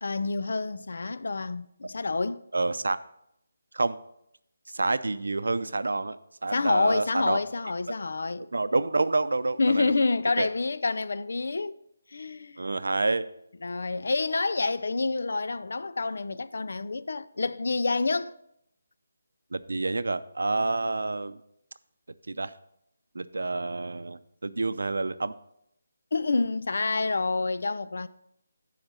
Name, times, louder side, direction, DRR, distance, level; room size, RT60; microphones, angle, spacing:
voice 1, 0.0-2.4 6.5-8.5 9.6-11.8 12.1-12.7 13.6-18.3 26.1-28.1, left 3 dB, 55° left, 0.4 m, -28 dB
voice 2, 2.5-3.0 3.7-4.0 4.7-6.2 6.4-7.4 8.5-10.0 10.4-10.5 12.6-13.2 19.5-21.4 22.3-22.5 23.1-25.3, right 3 dB, 90° right, 0.5 m, -28 dB
8.0 x 4.9 x 7.1 m
hypercardioid pair, 180°, 0 cm